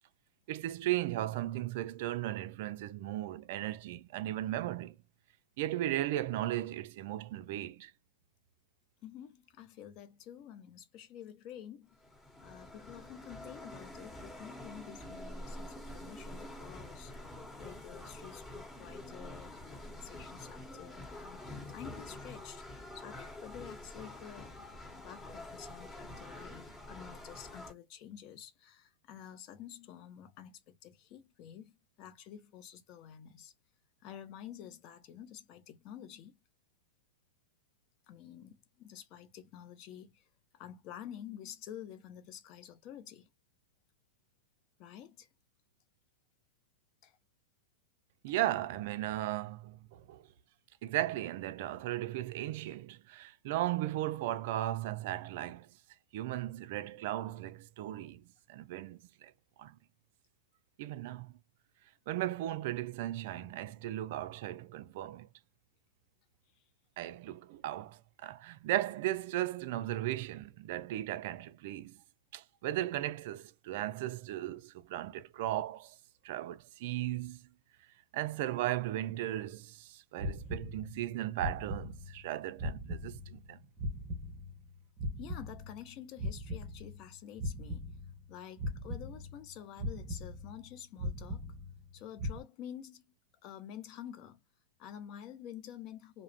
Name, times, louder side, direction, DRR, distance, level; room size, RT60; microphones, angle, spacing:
voice 1, 0.5-5.0 5.6-7.9 48.2-50.2 50.8-55.7 56.1-59.3 59.6-59.8 60.8-61.3 62.1-65.3 67.0-72.0 72.3-76.0 76.2-77.4 78.1-83.6, right 14 dB, 60° right, 0.4 m, -36 dB
voice 2, 9.0-11.9 12.4-24.5 25.0-33.5 34.0-36.4 38.1-40.3 40.5-43.3 44.8-45.3 47.0-47.2 85.2-87.9 88.3-91.5 91.9-93.1 93.4-94.4 94.8-96.2, left 10 dB, 45° left, 0.6 m, -49 dB
sound 1, 11.9-27.7, left 1 dB, 20° left, 1.3 m, -47 dB
sound 2, 80.2-81.1 81.4-82.3 82.6-84.7 85.0-87.1 87.4-88.3 88.6-89.5 89.8-90.7 91.0-91.9 92.2-92.4, left 1 dB, 20° right, 0.8 m, -39 dB
2.4 x 2.0 x 3.1 m
hypercardioid pair, 115°, 0 cm